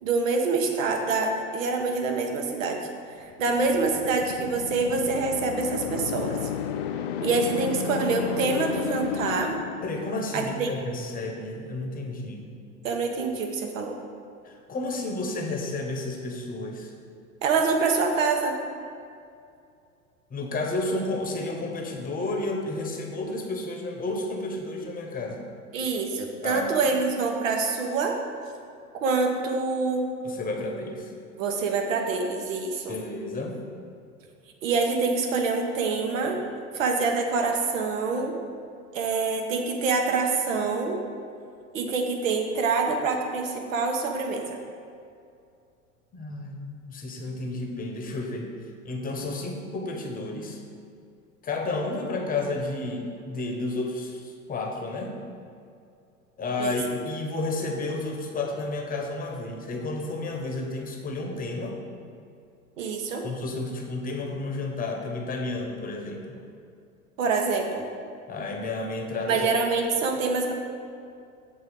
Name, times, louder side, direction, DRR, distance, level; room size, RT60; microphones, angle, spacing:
voice 1, 0.0-2.9 3.2-6.4 7.2-9.6 10.3-10.7 12.8-13.9 17.4-18.6 25.7-28.2 29.0-30.0 31.3-32.9 34.6-36.4 36.7-38.3 38.9-41.0 41.7-44.6 56.6-56.8 62.8-63.2 67.2-67.8 69.3-70.5, right 4 dB, 65° right, 3 dB, 1.1 m, -26 dB
sound 1, 3.4-10.4, left 8 dB, 45° left, 0.6 m, -33 dB
voice 2, 9.8-12.5 14.4-16.9 20.3-25.5 26.4-26.9 30.2-31.1 32.9-33.7 46.1-48.5 48.8-50.6 51.4-55.2 56.4-61.8 63.2-66.4 68.3-69.5, left 2 dB, 20° left, 2 dB, 1.1 m, -31 dB
7.8 x 3.9 x 6.8 m, 2.4 s
figure-of-eight pair, 85°, 43 cm